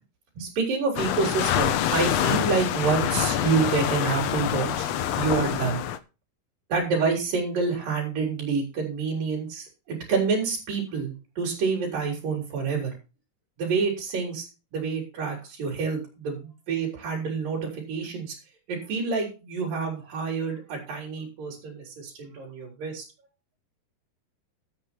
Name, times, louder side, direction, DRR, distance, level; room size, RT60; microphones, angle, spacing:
voice 1, 0.4-4.9 5.1-5.8 6.7-12.9 13.6-18.4 18.7-23.0, right 5 dB, 80° right, -1 dB, 5.5 m, -28 dB
sound 1, 1.0-6.0, left 10 dB, 70° left, 1.7 m, -26 dB
13.5 x 8.4 x 4.4 m, 0.31 s
omnidirectional pair, 3.9 m